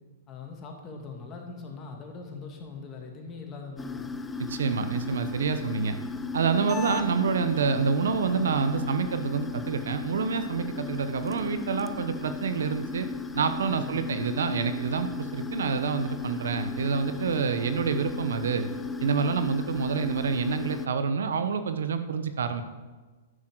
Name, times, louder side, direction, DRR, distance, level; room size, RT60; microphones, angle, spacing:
voice 1, 0.3-4.1 13.7-14.1 17.5-17.9, left 4 dB, 25° left, 1 dB, 2.1 m, -42 dB
sound 1, 3.8-20.9, left 5 dB, 10° left, 0.5 m, -36 dB
voice 2, 4.4-6.0 6.3-13.1 13.3-18.7 19.0-22.6, right 5 dB, 80° right, 10 dB, 0.9 m, -27 dB
11.0 x 5.8 x 7.7 m, 1.3 s
hypercardioid pair, 130°, 0 cm